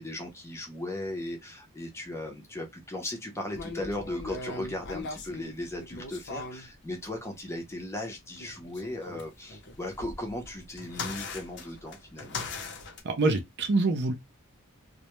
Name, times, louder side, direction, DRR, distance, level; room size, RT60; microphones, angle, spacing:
voice 1, 0.0-12.4, left 1 dB, 10° left, 0.6 m, -37 dB
sound 1, 3.6-6.7 8.4-13.0, left 3 dB, 55° left, 0.6 m, -40 dB
voice 2, 13.0-14.1, right 3 dB, 50° right, 0.5 m, -25 dB
2.1 x 2.1 x 2.9 m
head